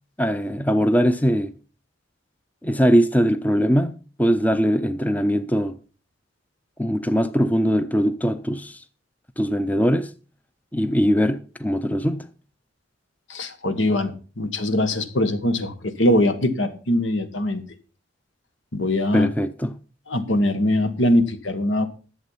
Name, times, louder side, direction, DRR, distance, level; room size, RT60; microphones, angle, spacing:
voice 1, 0.2-1.5 2.6-5.8 6.8-8.8 9.4-10.1 10.7-12.3 19.1-19.8, equal, 10° left, 0.5 m, -21 dB
voice 2, 13.3-17.6 18.7-19.3 20.1-21.9, left 1 dB, 85° left, 1.4 m, -22 dB
11.5 x 7.7 x 5.6 m
head